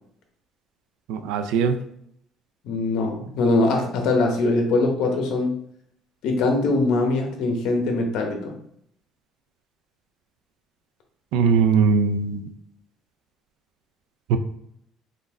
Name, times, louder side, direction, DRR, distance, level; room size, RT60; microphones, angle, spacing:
voice 1, 1.1-1.8 11.3-12.4 14.3-14.4, right 5 dB, 75° right, 8 dB, 0.4 m, -20 dB
voice 2, 2.6-5.6 6.2-8.5, left 2 dB, 55° left, 3 dB, 0.9 m, -22 dB
3.9 x 2.6 x 3.5 m, 0.71 s
cardioid pair, 170°, 0 cm